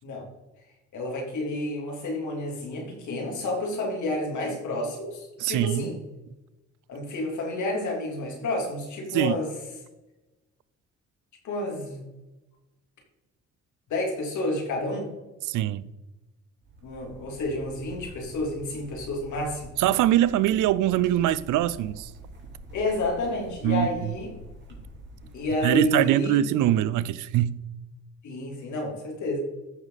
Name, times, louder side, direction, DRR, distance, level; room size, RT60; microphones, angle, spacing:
voice 1, 0.9-6.0 6.9-9.5 11.4-12.0 13.9-15.1 16.8-19.7 22.7-24.3 25.3-26.4 28.2-29.4, left 2 dB, 75° left, 3.2 m, -30 dB
voice 2, 5.4-5.9 9.1-9.4 15.5-15.9 19.8-22.1 23.6-23.9 25.6-27.6, right 12 dB, 85° right, 0.5 m, -23 dB
sound 1, 16.6-26.0, right 1 dB, 35° right, 3.4 m, -46 dB
14.0 x 6.0 x 4.0 m
cardioid pair, 90°, 30 cm